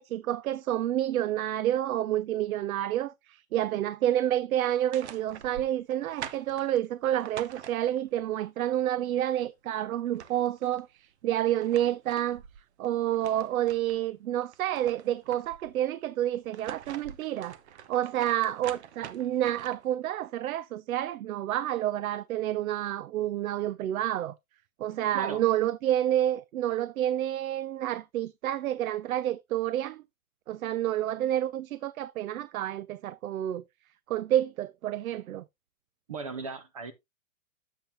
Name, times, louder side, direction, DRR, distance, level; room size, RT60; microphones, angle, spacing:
voice 1, 0.0-12.4 12.8-17.6 17.9-24.3 24.8-30.0 30.5-33.6 34.1-35.4, right 12 dB, 85° right, 0.6 m, -29 dB
sound 1, 4.7-8.2 9.7-9.8 10.0-10.8 11.4-14.0 14.4-15.7 16.3-20.0, right 9 dB, 55° right, 0.8 m, -45 dB
voice 2, 25.1-25.4 36.1-36.9, right 4 dB, 30° right, 0.4 m, -37 dB
8.7 x 7.4 x 2.6 m
hypercardioid pair, 160°, 41 cm